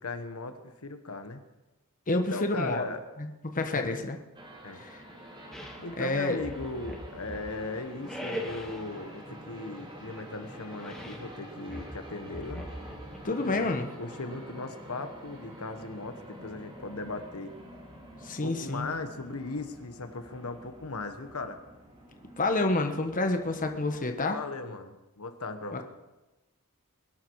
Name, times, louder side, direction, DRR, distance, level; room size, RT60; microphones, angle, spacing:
voice 1, 0.0-1.4 2.1-3.0 3.5-4.1 4.6-4.8 5.8-12.6 13.4-17.5 18.4-21.6 24.2-25.8, left 3 dB, 80° left, 7 dB, 1.3 m, -38 dB
voice 2, 2.1-2.8 3.2-4.2 4.8-5.0 6.0-6.4 13.2-13.9 18.2-18.9 22.4-24.4 25.7-25.8, left 2 dB, 40° left, 5 dB, 1.2 m, -29 dB
sound 1, 4.3-24.0, right 1 dB, 25° right, 2.9 m, -47 dB
sound 2, 5.5-5.9 6.4-7.6 8.0-8.9 10.8-11.3 11.7-13.2, equal, ahead, 2.4 m, -40 dB
22.0 x 11.5 x 4.7 m, 1.1 s
head